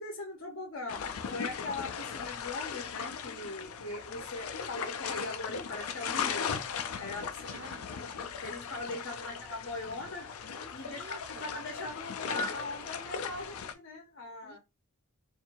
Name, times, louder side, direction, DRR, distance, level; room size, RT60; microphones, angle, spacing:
voice 1, 0.0-6.5 7.0-7.5 7.9-8.1 8.4-10.3 10.7-14.6, left 2 dB, 60° left, 0.8 m, -40 dB
sound 1, 0.9-13.7, left 7 dB, 85° left, 0.4 m, -38 dB
voice 2, 7.4-7.8 9.2-9.4 10.8-11.5 14.4-14.6, right 3 dB, 45° right, 0.4 m, -51 dB
4.4 x 2.7 x 2.5 m
head